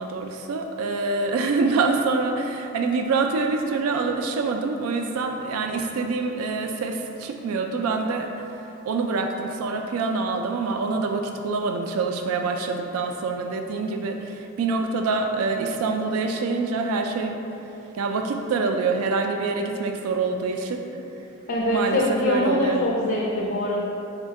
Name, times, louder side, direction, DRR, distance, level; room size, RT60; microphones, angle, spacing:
voice 1, 0.0-8.3 8.9-17.4 17.9-20.8 21.7-22.8, right 4 dB, 90° right, 4 dB, 0.3 m, -25 dB
voice 2, 21.5-23.8, left 1 dB, 50° left, -3 dB, 0.4 m, -23 dB
4.2 x 2.2 x 4.5 m, 2.9 s
head